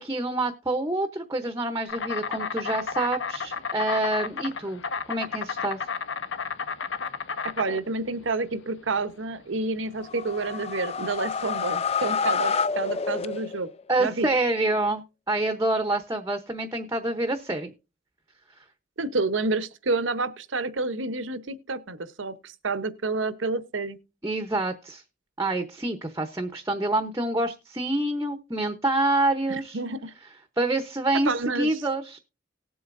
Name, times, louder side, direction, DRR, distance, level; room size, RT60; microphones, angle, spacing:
voice 1, 0.0-4.8 5.1-5.8 13.9-17.7 18.5-18.6 24.2-25.0 25.4-29.8 30.6-32.2, right 2 dB, 15° right, 0.8 m, -27 dB
Insect, 1.9-11.9, left 5 dB, 75° left, 0.9 m, -33 dB
voice 2, 7.6-13.7 14.0-14.3 19.0-24.0 29.5-30.1 31.2-31.7, right 3 dB, 80° right, 0.9 m, -29 dB
sound 1, 10.0-13.8, left 5 dB, 30° left, 0.4 m, -28 dB
18.5 x 7.8 x 2.6 m
head